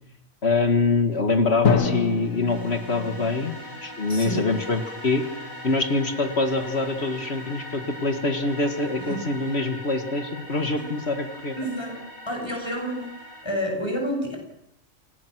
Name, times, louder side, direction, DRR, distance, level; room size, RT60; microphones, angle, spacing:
voice 1, 0.4-3.6 3.8-5.2 5.6-11.6, left 3 dB, 50° left, 7 dB, 2.1 m, -24 dB
sound 1, 1.6-13.4, equal, 90° left, 7.2 m, -41 dB
Drum, 1.6-3.6, left 6 dB, 70° left, 1.9 m, -25 dB
voice 2, 4.1-4.5 9.1-9.3 10.8-10.9 11.6-12.0 12.3-14.4, equal, 20° left, 1 dB, 6.3 m, -30 dB
27.5 x 19.0 x 6.2 m, 0.78 s
omnidirectional pair, 1.4 m